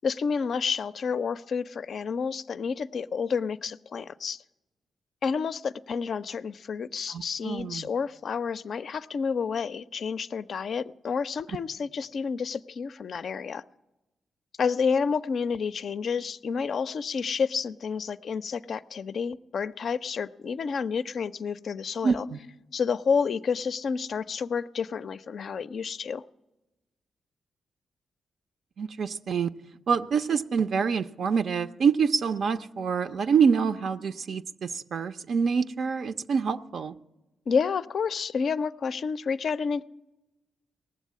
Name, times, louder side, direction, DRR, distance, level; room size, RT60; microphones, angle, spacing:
voice 1, 0.0-4.4 5.2-13.6 14.6-22.3 22.7-26.2 37.5-39.8, left 6 dB, 65° left, 13 dB, 0.4 m, -30 dB
voice 2, 7.1-7.9 22.0-22.4 28.8-29.5 29.9-37.0, right 6 dB, 65° right, 9 dB, 0.4 m, -26 dB
18.0 x 7.4 x 8.3 m, 1.0 s
supercardioid pair, 50°, 0 cm